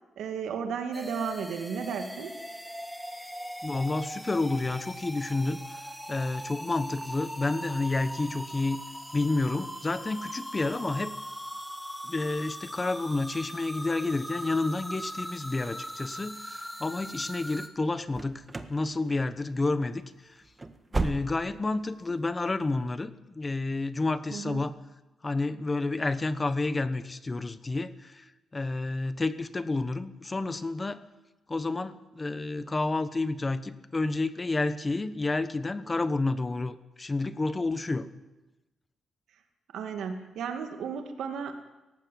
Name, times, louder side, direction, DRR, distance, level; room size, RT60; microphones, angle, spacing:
voice 1, 0.2-2.3 24.3-24.6 39.7-41.6, right 6 dB, 85° right, 5 dB, 2.3 m, -34 dB
sound 1, 0.9-17.7, equal, ahead, 2.1 m, -40 dB
voice 2, 3.6-8.8 9.1-11.2 12.0-18.4 18.7-20.4 20.9-24.7 25.2-31.0 31.5-38.1, left 3 dB, 25° left, 12 dB, 1.1 m, -30 dB
sound 2, 18.1-18.8 19.1-19.5 19.8-20.0 20.4-21.7 22.0-22.1 22.6-22.7, right 3 dB, 20° right, 1.5 m, -34 dB
18.0 x 15.0 x 9.3 m, 1.1 s
cardioid pair, 105°, 0 cm